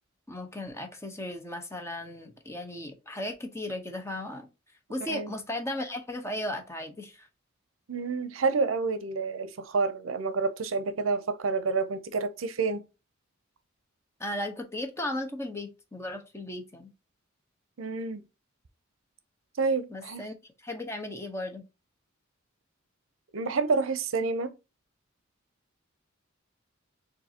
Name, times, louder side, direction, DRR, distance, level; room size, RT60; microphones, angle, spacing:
voice 1, 0.3-4.5 4.9-7.3 14.2-16.9 19.9-21.7, left 1 dB, 15° left, 0.9 m, -36 dB
voice 2, 7.9-12.8 17.8-18.2 19.6-20.3 23.3-24.5, right 4 dB, 70° right, 0.6 m, -29 dB
6.7 x 2.6 x 2.8 m
head